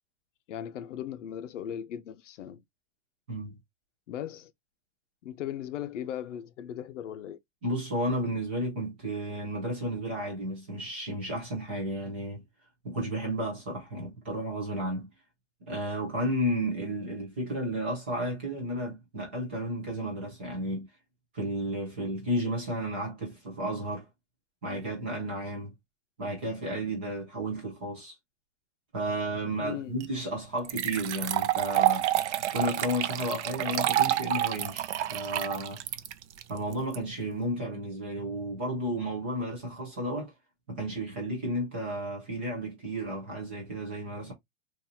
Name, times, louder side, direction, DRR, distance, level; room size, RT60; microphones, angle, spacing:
voice 1, 0.5-2.6 4.1-4.5 5.2-7.4 29.6-29.9, left 10 dB, 85° left, 0.7 m, -38 dB
voice 2, 7.6-12.4 12.8-15.1 15.7-20.9 21.3-24.1 24.6-25.7 26.2-28.2 28.9-32.1 32.5-35.8 36.5-40.3 40.7-44.3, equal, 10° right, 0.4 m, -32 dB
sound 1, 30.0-30.1 30.7-37.0, right 13 dB, 70° right, 0.6 m, -28 dB
3.9 x 2.5 x 2.7 m
supercardioid pair, 180°, 36 cm